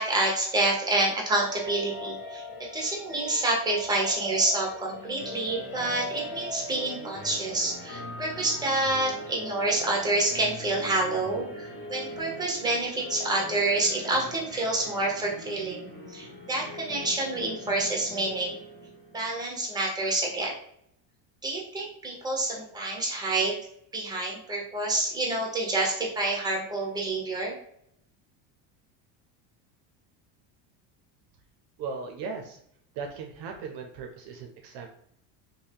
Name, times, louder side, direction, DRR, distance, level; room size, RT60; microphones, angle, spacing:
voice 1, 0.0-15.8 16.1-18.5 19.1-20.5 21.4-23.5 23.9-27.5, right 2 dB, 10° right, -1 dB, 0.9 m, -28 dB
sound 1, 1.3-19.5, left 1 dB, 40° left, 1.4 m, -41 dB
voice 2, 31.8-32.6 32.9-34.9, right 5 dB, 55° right, 4 dB, 0.6 m, -37 dB
2.6 x 2.2 x 3.4 m, 0.70 s
supercardioid pair, 110°, 49 cm